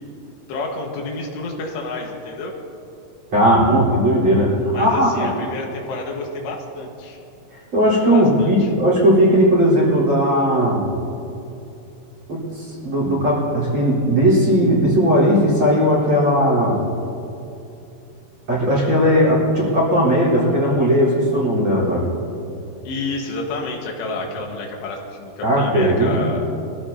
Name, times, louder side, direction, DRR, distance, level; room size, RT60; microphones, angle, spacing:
voice 1, 0.5-2.5 4.7-7.2 8.1-8.7 22.9-26.4, left 3 dB, 85° left, 0 dB, 3.7 m, -29 dB
voice 2, 3.3-5.3 7.7-10.9 12.3-16.8 18.5-22.1 25.4-26.2, equal, 30° right, -6 dB, 4.4 m, -17 dB
24.0 x 14.5 x 2.8 m, 2.7 s
omnidirectional pair, 4.8 m